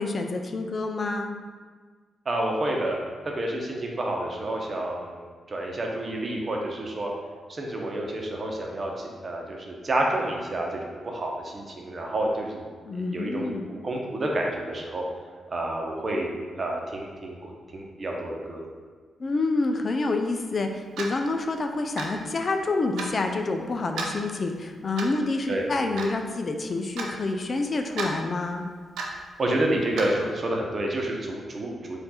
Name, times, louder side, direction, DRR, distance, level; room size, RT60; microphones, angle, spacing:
voice 1, 0.0-1.4 12.9-13.7 19.2-28.7, left 3 dB, 50° left, 5 dB, 0.4 m, -28 dB
voice 2, 2.2-3.0 3.2-7.1 7.5-12.7 12.9-15.0 15.5-16.3 16.6-18.6 25.5-25.7 29.4-32.0, right 1 dB, 45° right, 0 dB, 0.8 m, -29 dB
Clock, 21.0-21.2 22.0-22.2 23.0-23.1 24.0-24.2 25.0-25.2 26.0-26.1 27.0-27.1 28.0-28.1 29.0-29.2 30.0-30.1, right 3 dB, 80° right, 0.5 m, -32 dB
4.3 x 2.5 x 4.3 m, 1.5 s
supercardioid pair, 45°, 0 cm